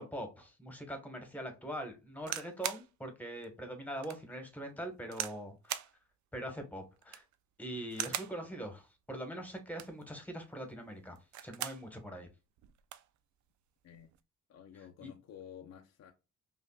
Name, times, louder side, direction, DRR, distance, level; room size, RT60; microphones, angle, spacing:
voice 1, 0.0-5.8 6.3-7.2 7.6-11.2 11.4-12.3 15.0-15.1, right 1 dB, 5° left, 1.3 m, -42 dB
sound 1, 2.2-2.9 3.4-3.5 4.0-4.2 5.1-5.4 5.7-5.9 7.0-7.4 7.9-8.4 9.6-10.0 11.2-11.9 12.3-12.4 12.6-13.1 13.9-14.2, right 12 dB, 70° right, 0.5 m, -40 dB
voice 2, 14.5-16.1, left 9 dB, 65° left, 0.7 m, -51 dB
5.3 x 2.5 x 2.3 m
cardioid pair, 90°, 30 cm